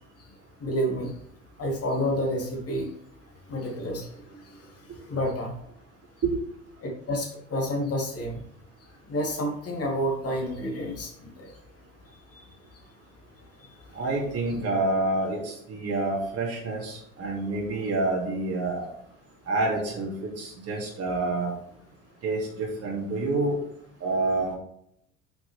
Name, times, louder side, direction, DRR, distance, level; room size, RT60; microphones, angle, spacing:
voice 1, 0.6-1.1 1.6-2.9 3.5-4.1 5.1-5.5 6.8-8.4 9.1-11.1 11.4-11.5 14.5-14.6, equal, 35° left, 1 dB, 2.7 m, -29 dB
voice 2, 13.9-18.9 19.5-21.5 22.2-23.6 24.0-24.5, right 2 dB, 35° right, -3 dB, 2.7 m, -28 dB
8.9 x 5.8 x 3.5 m, 0.70 s
figure-of-eight pair, 70°, 40 cm